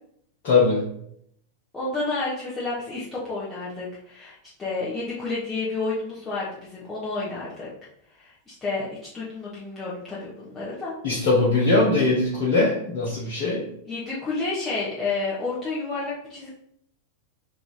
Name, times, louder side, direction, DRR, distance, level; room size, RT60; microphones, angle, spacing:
voice 1, 0.4-0.9 11.0-13.6, left 3 dB, 50° left, -5 dB, 1.0 m, -21 dB
voice 2, 1.7-7.7 8.2-10.9 13.2-13.5 13.8-16.5, left 3 dB, 15° left, -9 dB, 1.2 m, -30 dB
3.8 x 2.7 x 4.8 m, 0.71 s
figure-of-eight pair, 90°, 0 cm